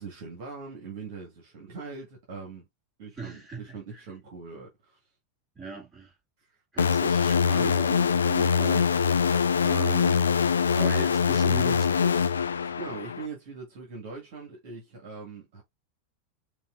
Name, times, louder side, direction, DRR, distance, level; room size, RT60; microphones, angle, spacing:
voice 1, 0.0-2.6 3.0-5.0 8.5-8.9 12.5-15.6, right 4 dB, 50° right, 1.8 m, -42 dB
voice 2, 3.2-4.1 5.5-6.1 6.7-9.0 9.6-10.3 10.7-12.4, right 5 dB, 20° right, 2.7 m, -39 dB
sound 1, 6.8-13.3, left 6 dB, 70° left, 0.4 m, -23 dB
5.3 x 2.7 x 2.5 m
figure-of-eight pair, 90°, 0 cm